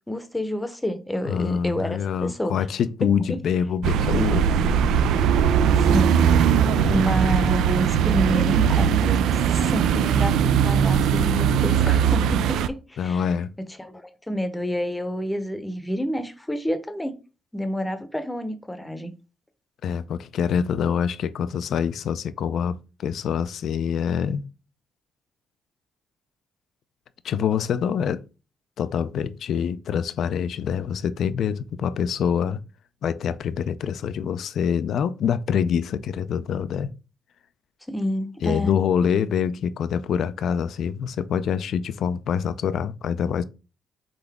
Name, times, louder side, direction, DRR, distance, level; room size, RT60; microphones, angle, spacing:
voice 1, 0.1-2.5 3.3-3.4 5.8-6.3 6.9-13.2 13.8-13.9 14.3-17.2 17.5-19.1 37.9-38.7, equal, 10° left, 0.7 m, -28 dB
voice 2, 1.2-4.8 6.6-7.2 13.0-13.5 19.8-24.4 27.2-28.2 28.8-32.6 33.0-36.9 38.4-43.4, left 7 dB, 70° left, 0.4 m, -25 dB
sound 1, 3.8-12.7, right 8 dB, 85° right, 0.3 m, -20 dB
3.9 x 3.8 x 3.4 m
cardioid pair, 90°, 0 cm